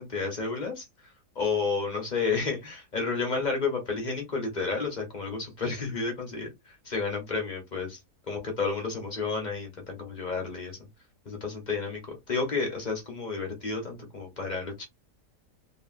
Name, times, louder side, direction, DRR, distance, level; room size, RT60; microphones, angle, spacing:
voice 1, 0.0-6.5 6.8-8.0 8.3-10.7 11.2-14.8, left 4 dB, 35° left, 0.8 m, -31 dB
3.0 x 2.4 x 2.4 m
omnidirectional pair, 1.7 m